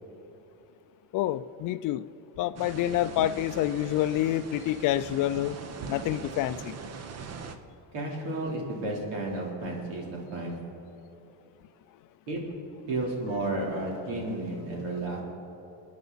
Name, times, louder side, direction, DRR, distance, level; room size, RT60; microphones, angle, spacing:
voice 1, 1.1-2.0 2.4-5.6 5.9-6.7, left 13 dB, 50° left, 14 dB, 0.4 m, -27 dB
sound 1, 2.6-7.6, right 5 dB, 35° right, 0.9 m, -41 dB
voice 2, 7.9-10.6 12.3-12.6 12.9-15.2, right 2 dB, 80° right, -2 dB, 3.5 m, -32 dB
28.0 x 9.4 x 4.1 m, 2.9 s
cardioid pair, 135°, 42 cm